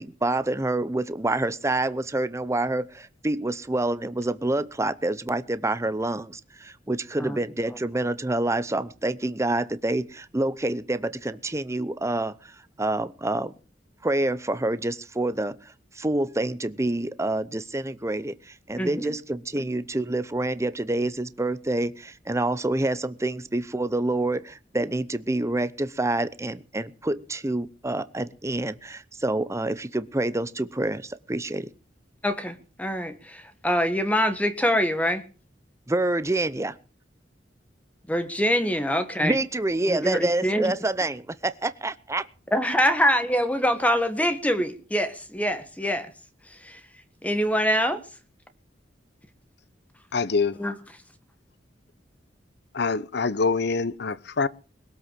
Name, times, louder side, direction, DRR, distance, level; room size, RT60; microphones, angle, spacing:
voice 1, 0.0-13.5 14.0-31.7 35.9-36.8 39.2-42.3, right 2 dB, 15° right, 0.8 m, -27 dB
voice 2, 18.8-19.1 19.5-19.7 32.2-35.2 38.1-39.4 39.9-40.7 42.5-46.1 46.5-46.8 47.2-48.0 50.6-50.7, equal, 10° left, 1.5 m, -24 dB
voice 3, 50.1-50.6 52.7-54.5, left 4 dB, 65° left, 0.8 m, -25 dB
21.5 x 8.1 x 7.5 m
head